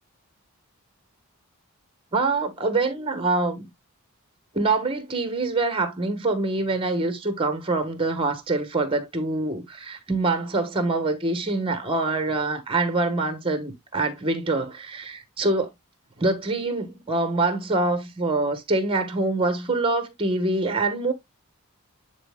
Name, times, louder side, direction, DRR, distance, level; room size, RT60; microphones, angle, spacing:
voice 1, 2.1-3.7 4.5-15.7 16.2-21.1, right 2 dB, 25° right, 1.4 m, -25 dB
11.0 x 4.2 x 2.3 m
head